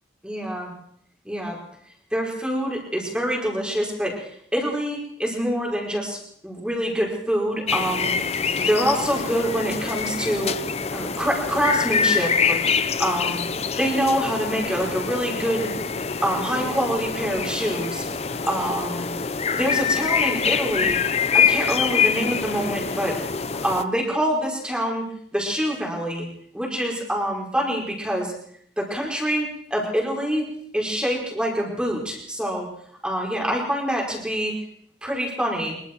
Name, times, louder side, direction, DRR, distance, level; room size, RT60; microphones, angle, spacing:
voice 1, 0.2-0.7 1.3-1.6 2.1-8.2 8.5-10.5 10.9-12.6 13.0-13.5 13.8-15.7 16.2-18.1 18.4-19.1 19.5-21.0 21.3-23.2 23.6-26.3 26.5-28.3 28.8-30.5 30.7-32.7 33.0-34.5 35.0-35.8, equal, 5° right, -2 dB, 5.1 m, -25 dB
sound 1, 7.7-23.8, left 6 dB, 35° left, 0.7 m, -25 dB
24.5 x 23.0 x 4.7 m, 0.67 s
head